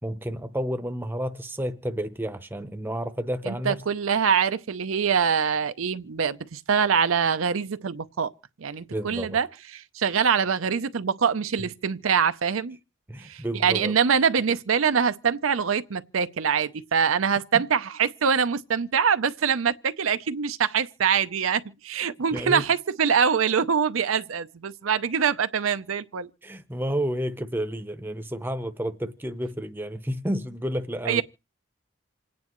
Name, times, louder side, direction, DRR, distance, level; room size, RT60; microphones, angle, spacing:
voice 1, 0.0-3.8 8.9-9.4 13.1-13.9 22.3-22.7 26.4-31.2, equal, 10° right, 0.7 m, -30 dB
voice 2, 3.4-8.3 8.6-9.5 9.7-12.8 13.2-26.3 31.1-31.2, right 6 dB, 90° right, 0.6 m, -24 dB
27.5 x 9.4 x 3.1 m
head